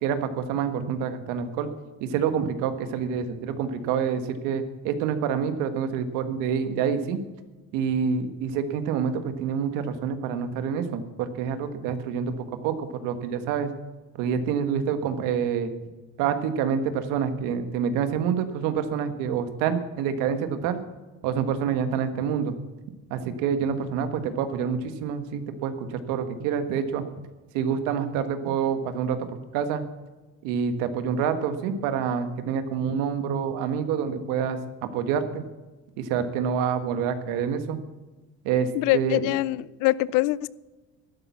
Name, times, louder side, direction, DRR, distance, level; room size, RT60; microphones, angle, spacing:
voice 1, 0.0-1.7 2.0-7.2 7.7-13.7 14.2-15.7 16.2-20.8 21.2-22.5 23.1-27.0 27.5-29.8 30.4-34.6 34.9-35.4 36.0-37.8 38.4-39.3, right 7 dB, 85° right, 1.5 m, -27 dB
voice 2, 38.7-40.5, left 18 dB, 80° left, 0.5 m, -24 dB
12.0 x 10.5 x 7.1 m
cardioid pair, 130°, 31 cm